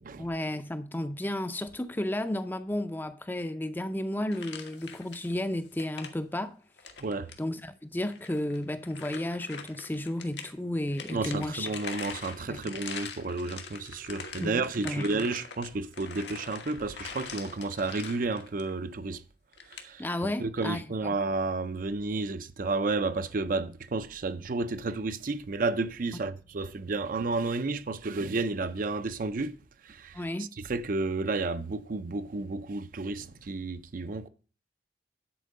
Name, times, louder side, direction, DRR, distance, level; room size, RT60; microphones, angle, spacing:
voice 1, 0.2-6.6 7.4-11.7 12.5-12.6 14.4-15.0 20.0-21.2 30.1-30.5, left 1 dB, 10° left, 0.5 m, -33 dB
sound 1, 4.3-5.4 5.7-6.1 6.8-7.4 8.1-10.5 10.9-18.7 19.5-19.8, left 6 dB, 85° left, 1.4 m, -43 dB
voice 2, 7.0-7.3 11.1-19.2 19.7-29.6 29.8-30.2 30.7-34.3, right 3 dB, 50° right, 0.5 m, -31 dB
10.0 x 4.5 x 6.5 m
head